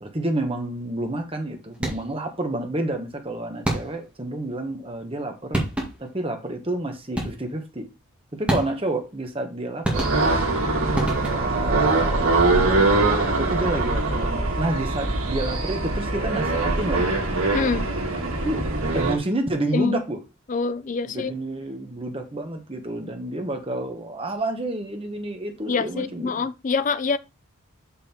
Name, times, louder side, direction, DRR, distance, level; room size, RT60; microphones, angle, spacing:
voice 1, 0.0-5.7 6.0-7.8 8.3-10.5 11.3-17.2 18.4-18.6 18.9-20.2 21.0-26.4, right 1 dB, 25° right, 1.2 m, -29 dB
sound 1, 1.7-2.2 3.6-4.2 5.2-5.3 5.5-6.2 7.1-7.6 8.5-9.0 9.8-10.5 10.9-11.6, right 1 dB, 5° right, 1.9 m, -28 dB
sound 2, 9.9-19.2, right 2 dB, 80° right, 1.8 m, -23 dB
voice 2, 17.5-17.8 19.7-20.0 20.5-21.3 25.7-27.2, left 4 dB, 35° left, 0.4 m, -25 dB
6.3 x 5.6 x 4.3 m
head